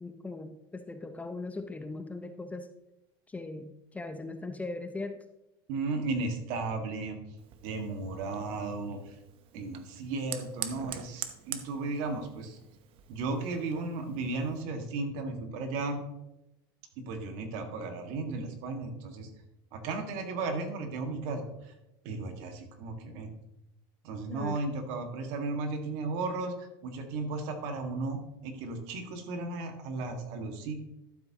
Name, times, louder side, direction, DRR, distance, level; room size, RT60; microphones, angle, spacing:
voice 1, 0.0-2.7 3.3-5.2 24.3-24.6, left 3 dB, 10° left, 9 dB, 0.6 m, -39 dB
voice 2, 5.7-7.2 7.6-9.2 9.5-12.6 13.1-16.0 17.1-19.3 19.7-21.7 22.0-23.3 24.0-30.7, right 3 dB, 60° right, 5 dB, 1.9 m, -35 dB
Fire, 7.4-14.6, right 10 dB, 45° right, 1.0 m, -45 dB
12.5 x 7.3 x 2.9 m, 0.90 s
supercardioid pair, 120°, 12 cm